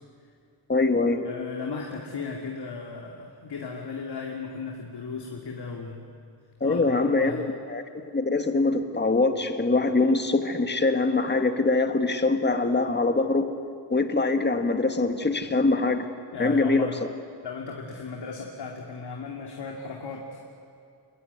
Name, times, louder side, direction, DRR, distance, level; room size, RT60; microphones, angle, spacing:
voice 1, 0.7-1.2 6.6-7.4 7.7-13.5 13.9-16.1 16.4-16.9, left 3 dB, 25° left, 7 dB, 1.7 m, -23 dB
voice 2, 1.2-6.1 6.6-7.4 16.3-17.0 17.4-20.4, left 4 dB, 60° left, 0 dB, 2.8 m, -36 dB
28.5 x 21.5 x 9.6 m, 2.4 s
wide cardioid pair, 155°, 45 cm